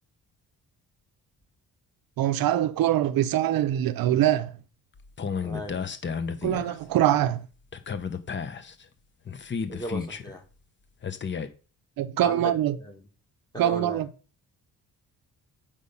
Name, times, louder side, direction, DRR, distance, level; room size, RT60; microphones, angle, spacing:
voice 1, 2.2-4.5 6.4-7.5 12.0-12.7 13.6-14.1, right 12 dB, 75° right, 0.7 m, -23 dB
sound 1, 5.0-6.8 7.7-8.8 9.3-10.4 11.0-11.5, left 6 dB, 30° left, 0.8 m, -32 dB
voice 2, 5.4-5.8 9.7-10.4 12.2-13.0 13.5-14.0, equal, 10° left, 1.9 m, -37 dB
8.4 x 5.3 x 5.4 m
cardioid pair, 120°, 36 cm